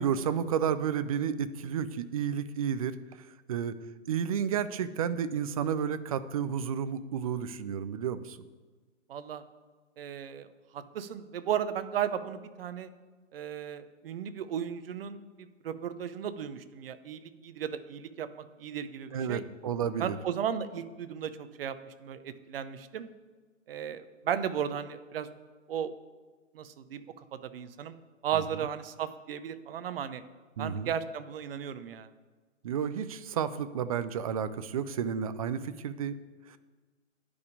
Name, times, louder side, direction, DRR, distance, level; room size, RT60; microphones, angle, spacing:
voice 1, 0.0-2.9 3.5-3.7 4.1-8.4 19.1-20.2 30.6-30.9 32.6-36.1, right 8 dB, 30° right, 13 dB, 0.4 m, -31 dB
voice 2, 9.1-9.4 10.0-10.5 10.7-12.9 13.3-19.4 20.0-23.1 23.7-25.3 25.7-25.9 26.5-27.0 27.3-28.0 28.2-30.2 30.6-32.1, right 8 dB, 50° right, 12 dB, 0.8 m, -35 dB
10.5 x 5.2 x 8.5 m, 1.3 s
hypercardioid pair, 135°, 38 cm